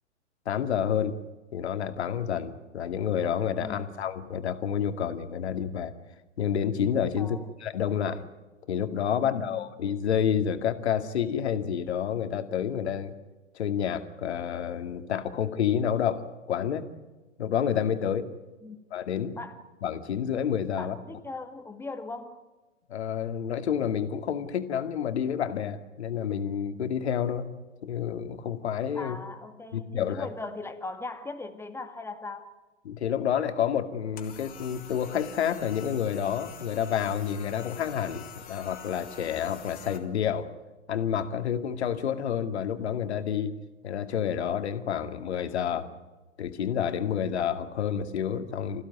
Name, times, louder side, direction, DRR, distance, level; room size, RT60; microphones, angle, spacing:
voice 1, 0.5-1.2 1.5-5.9 6.4-8.2 8.7-13.1 13.5-16.9 17.4-18.3 18.9-19.4 19.8-21.0 22.9-27.5 27.8-29.2 29.7-30.3 32.9-40.5 40.9-43.5 43.8-45.9 46.4-48.8, left 8 dB, 60° left, 8 dB, 2.4 m, -29 dB
voice 2, 9.2-9.7 18.6-18.8 19.3-19.6 20.8-22.4 28.9-32.5, left 3 dB, 5° left, 7 dB, 2.1 m, -39 dB
sound 1, 34.2-40.0, left 8 dB, 25° left, 3.7 m, -46 dB
27.0 x 16.0 x 9.5 m, 1.2 s
figure-of-eight pair, 110°, 37 cm